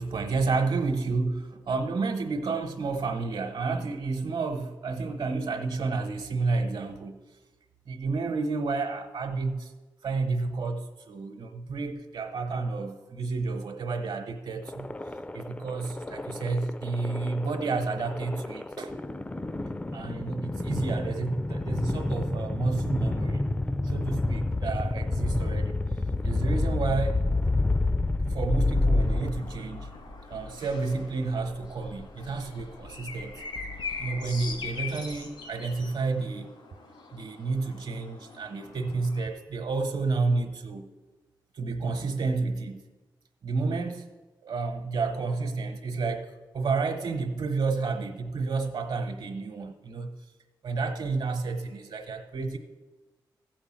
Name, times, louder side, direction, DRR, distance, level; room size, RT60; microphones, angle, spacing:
voice 1, 0.0-7.2 7.9-9.7 10.0-14.9 15.3-18.9 19.9-23.4 23.8-25.8 26.2-27.2 28.2-29.9 30.3-33.3 34.0-36.5 37.1-40.9 41.5-42.8 43.4-44.1 44.4-46.3 46.5-50.1 50.6-52.6, right 4 dB, 75° right, 4 dB, 1.1 m, -30 dB
sound 1, 14.7-29.8, left 2 dB, 15° left, 0.4 m, -29 dB
sound 2, 29.0-39.3, left 4 dB, 80° left, 2.2 m, -42 dB
sound 3, 29.4-35.6, left 3 dB, 65° left, 1.3 m, -48 dB
14.5 x 5.1 x 7.5 m, 1.2 s
cardioid pair, 55°, 8 cm